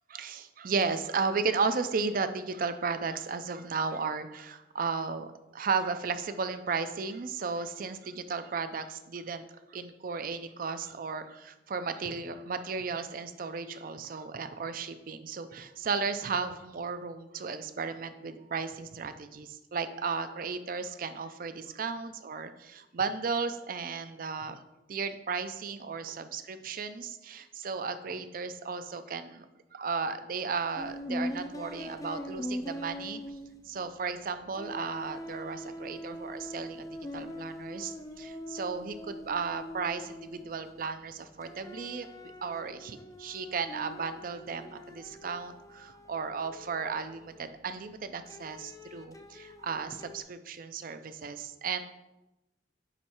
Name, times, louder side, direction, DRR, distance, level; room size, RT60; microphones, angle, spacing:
voice 1, 0.1-9.4 9.7-24.6 24.9-29.5 29.7-33.2 33.6-51.8, right 5 dB, 50° right, 10 dB, 0.5 m, -34 dB
sound 1, 30.8-34.2 34.5-41.0 41.4-47.6 48.3-50.2, equal, 20° left, 0.4 m, -42 dB
9.1 x 3.2 x 4.4 m, 0.97 s
head